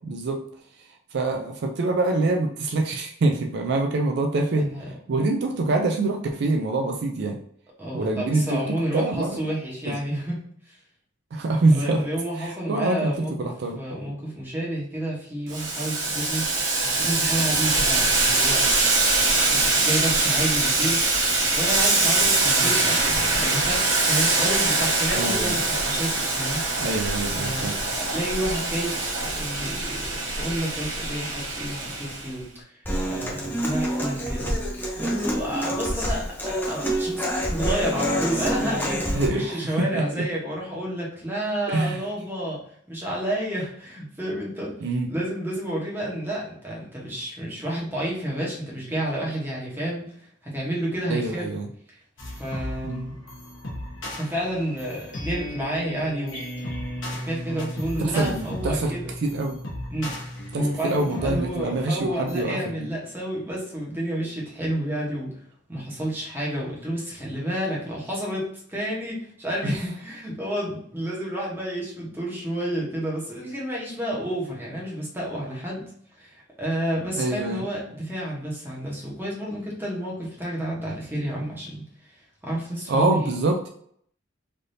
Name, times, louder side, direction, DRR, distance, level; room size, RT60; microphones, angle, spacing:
voice 1, 0.0-0.4 1.1-4.7 5.1-7.4 7.9-8.6 8.9-9.3 11.3-12.0 12.4-13.8 22.6-22.7 25.1-25.6 26.8-27.7 39.1-40.2 41.7-42.0 44.8-45.1 51.1-51.7 52.8-53.0 58.1-58.9 59.2-59.6 60.5-62.6 69.6-69.8 77.2-77.6 82.9-83.7, right 2 dB, 60° right, 3 dB, 0.4 m, -25 dB
voice 2, 7.8-10.4 10.7-10.8 11.7-16.5 17.0-18.6 19.3-21.0 21.5-26.6 27.4-34.5 35.0-42.6 42.9-44.7 45.1-50.3 50.5-51.5 51.9-52.0 52.3-53.1 54.1-56.4 57.1-59.1 59.9-60.2 60.5-65.3 65.7-75.8 76.2-81.8 82.1-82.2 82.4-83.3, right 1 dB, 10° right, -5 dB, 1.0 m, -30 dB
Boiling, 15.5-32.3, right 3 dB, 80° right, 1.0 m, -23 dB
Human voice / Acoustic guitar, 32.8-39.3, equal, 10° left, 0.6 m, -27 dB
sound 1, 52.2-62.4, left 1 dB, 90° left, 0.9 m, -36 dB
3.3 x 2.6 x 2.6 m, 0.65 s
head